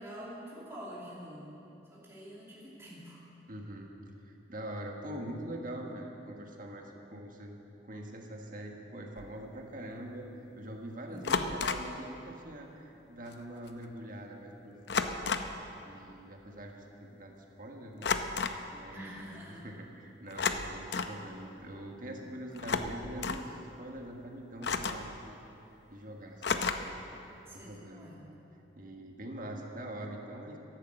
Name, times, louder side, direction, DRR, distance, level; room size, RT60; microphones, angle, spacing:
voice 1, 0.0-1.6 1.9-3.2 11.1-11.6 18.9-19.7 27.4-28.3, equal, 15° right, -7 dB, 2.7 m, -46 dB
voice 2, 3.5-3.9 4.5-7.5 7.9-10.3 10.6-15.4 15.9-17.3 17.6-18.1 18.7-25.3 25.9-28.1 28.8-30.6, right 1 dB, 50° right, 1 dB, 1.7 m, -44 dB
sound 1, 9.2-9.3 11.2-12.0 13.3-13.4 13.7-13.9 14.9-15.6 18.0-18.6 20.3-21.2 22.5-23.5 24.6-25.1 26.4-27.0, left 4 dB, 65° left, 0.7 m, -32 dB
11.5 x 11.5 x 7.8 m, 2.9 s
head